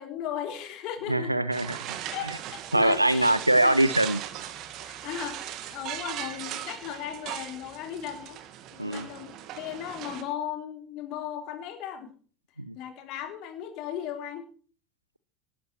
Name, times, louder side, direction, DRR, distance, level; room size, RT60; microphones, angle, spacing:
voice 1, 0.0-1.3 2.1-3.8 4.8-8.4 8.7-12.1 12.7-14.4, left 9 dB, 50° left, 7 dB, 3.4 m, -37 dB
voice 2, 1.1-1.8 2.7-4.2 8.8-9.1 12.6-12.8, right 1 dB, 90° right, 16 dB, 0.8 m, -23 dB
sound 1, 1.5-10.2, right 11 dB, 45° right, 2.3 m, -39 dB
18.5 x 12.5 x 4.4 m, 0.42 s
figure-of-eight pair, 75°, 0 cm